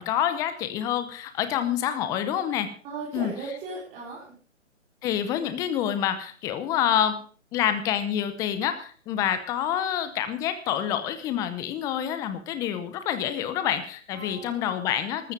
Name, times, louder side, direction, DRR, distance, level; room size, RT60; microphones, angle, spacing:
voice 1, 0.0-2.7 3.1-3.3 5.0-7.2 7.5-15.3, left 10 dB, 10° left, 11 dB, 0.7 m, -27 dB
voice 2, 2.8-4.2 14.1-14.8, right 4 dB, 20° right, -7 dB, 4.8 m, -37 dB
13.5 x 13.5 x 5.2 m, 0.40 s
figure-of-eight pair, 140°, 39 cm